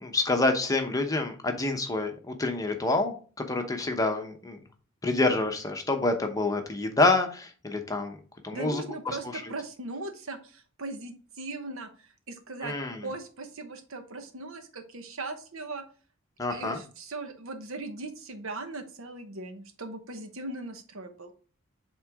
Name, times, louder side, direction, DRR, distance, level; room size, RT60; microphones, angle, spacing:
voice 1, 0.0-3.1 3.5-4.6 5.0-8.2 8.4-8.8 12.6-13.1 16.4-16.8, left 2 dB, 15° left, 4 dB, 0.9 m, -27 dB
voice 2, 8.5-12.8 13.0-15.8 16.5-21.3, right 2 dB, 70° right, 7 dB, 1.0 m, -39 dB
7.9 x 3.7 x 3.5 m, 0.40 s
head